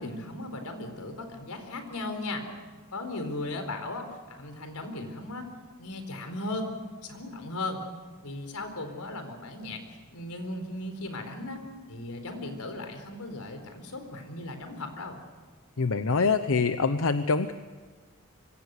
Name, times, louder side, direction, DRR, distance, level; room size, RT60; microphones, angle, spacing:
voice 1, 0.0-2.4 2.9-5.5 5.8-6.7 7.0-7.8 8.2-9.8 10.1-11.6 11.9-15.2, left 2 dB, 90° left, 6 dB, 4.3 m, -37 dB
voice 2, 15.8-17.5, left 4 dB, 65° left, 10 dB, 0.8 m, -25 dB
26.0 x 24.5 x 6.7 m, 1.4 s
head